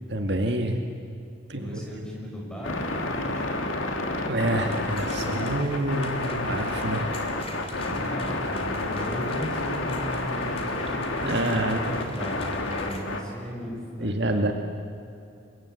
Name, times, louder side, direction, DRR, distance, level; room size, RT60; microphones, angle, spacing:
voice 1, 0.1-0.8 1.5-2.1 4.3-7.2 11.2-11.8 14.0-14.5, right 1 dB, 55° right, 4 dB, 2.0 m, -27 dB
voice 2, 1.5-3.7 7.7-14.5, equal, 5° left, -2 dB, 6.5 m, -36 dB
sound 1, 2.6-13.2, left 2 dB, 85° left, 2.9 m, -30 dB
sound 2, 4.6-13.0, left 2 dB, 30° left, 2.7 m, -40 dB
29.5 x 23.5 x 8.4 m, 2.5 s
head